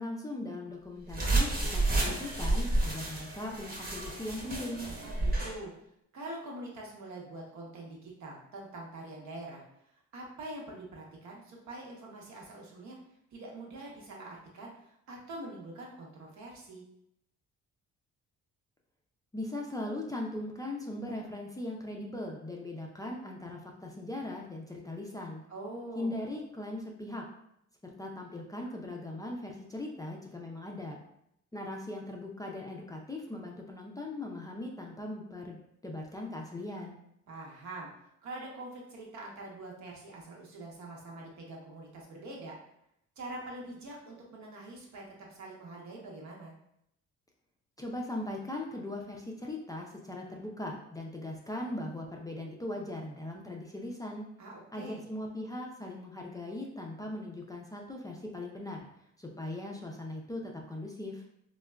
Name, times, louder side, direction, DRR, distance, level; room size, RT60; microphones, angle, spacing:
voice 1, 0.0-4.9 19.3-25.4 26.0-27.3 27.8-31.0 31.5-35.6 35.8-37.0 47.8-54.2 54.7-58.9 59.2-61.2, left 1 dB, 10° left, -1 dB, 0.3 m, -39 dB
sound 1, 1.1-5.6, right 2 dB, 30° right, 0.9 m, -30 dB
voice 2, 5.0-5.7 6.1-9.6 10.1-13.0 13.3-16.8 25.5-26.1 37.3-37.9 38.2-42.6 43.2-45.0 45.3-46.6 54.4-55.0, right 2 dB, 70° right, -2 dB, 0.9 m, -44 dB
3.3 x 2.2 x 2.2 m, 0.76 s
cardioid pair, 90°, 30 cm